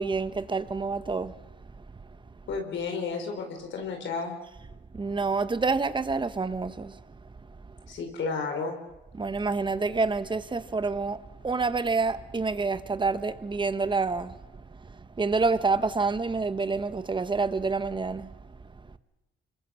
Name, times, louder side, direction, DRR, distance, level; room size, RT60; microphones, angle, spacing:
voice 1, 0.0-1.3 4.9-7.0 9.1-14.4 14.8-18.3, right 4 dB, 25° right, 1.2 m, -28 dB
voice 2, 2.5-4.4 7.9-8.8, left 4 dB, 70° left, 4.5 m, -32 dB
26.0 x 21.5 x 6.4 m
cardioid pair, 90°, 20 cm